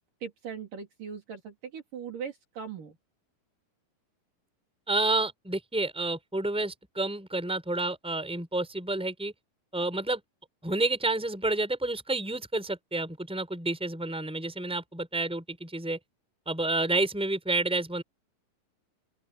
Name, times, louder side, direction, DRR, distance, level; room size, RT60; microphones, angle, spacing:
voice 1, 0.0-3.0, right 7 dB, 70° right, 5.4 m, -40 dB
voice 2, 4.9-9.3 9.7-10.2 10.6-16.0 16.5-18.0, right 2 dB, ahead, 5.6 m, -29 dB
open air
omnidirectional pair, 4.0 m